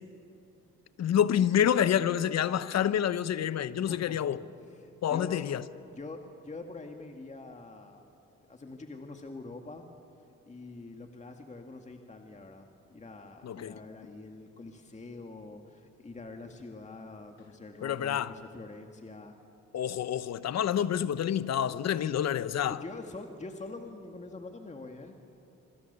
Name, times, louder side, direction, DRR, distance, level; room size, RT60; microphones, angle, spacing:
voice 1, 1.0-4.4 5.0-5.6 13.4-13.7 17.8-18.3 19.7-22.8, left 9 dB, 60° left, 1.0 m, -28 dB
voice 2, 3.9-4.4 4.7-5.5 5.9-8.0 8.5-9.8 10.5-19.4 22.7-25.2, left 3 dB, 25° left, 2.1 m, -45 dB
26.5 x 26.0 x 6.9 m
cardioid pair, 90°, 30 cm